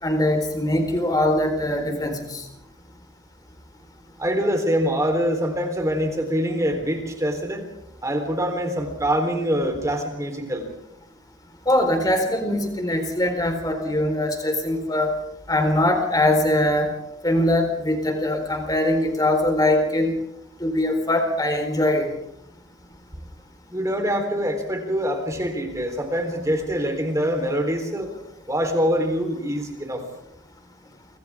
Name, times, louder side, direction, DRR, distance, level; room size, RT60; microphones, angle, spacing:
voice 1, 0.0-2.4 11.7-15.1 15.5-16.9 17.2-20.1 20.6-22.1, left 1 dB, 20° left, 4 dB, 4.3 m, -22 dB
voice 2, 4.2-7.6 8.0-10.7 23.7-28.1 28.5-30.0, equal, 15° right, 4 dB, 3.9 m, -24 dB
29.0 x 26.0 x 3.7 m, 0.80 s
head